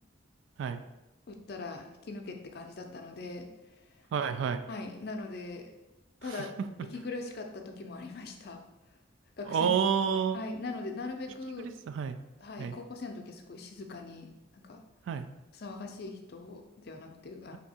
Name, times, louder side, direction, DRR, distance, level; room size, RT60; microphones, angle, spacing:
voice 1, 1.3-3.5 4.7-5.7 6.2-6.5 6.9-8.6 9.4-9.8 10.1-11.7 12.4-14.3 14.5-14.8 15.5-17.6, left 3 dB, 55° left, 4 dB, 0.5 m, -41 dB
voice 2, 4.1-4.6 6.3-6.4 9.5-10.4 11.6-12.2 12.6-12.7 15.1-15.3, right 7 dB, 75° right, 9 dB, 0.3 m, -29 dB
3.4 x 2.7 x 4.1 m, 0.97 s
head